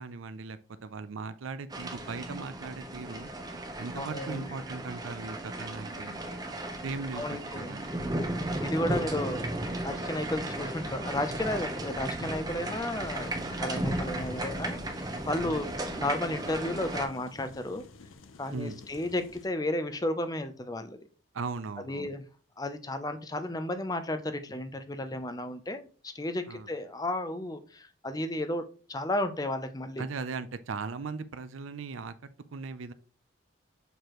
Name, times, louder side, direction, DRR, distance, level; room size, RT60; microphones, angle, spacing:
voice 1, 0.0-3.3 3.8-6.3 6.8-7.9 15.4-15.6 18.5-18.8 21.3-22.1 26.5-26.7 30.0-32.9, right 4 dB, 85° right, 0.5 m, -38 dB
sound 1, 1.7-17.1, right 1 dB, 20° right, 0.7 m, -35 dB
voice 2, 3.9-4.4 7.2-7.8 8.6-9.5 9.8-14.8 15.3-15.7 15.9-17.8 18.4-21.0 21.9-22.2 22.6-25.9 26.1-28.6 28.9-30.1, left 1 dB, 20° left, 0.5 m, -33 dB
sound 2, 12.9-19.5, left 3 dB, 90° left, 0.6 m, -51 dB
6.7 x 4.7 x 3.0 m
head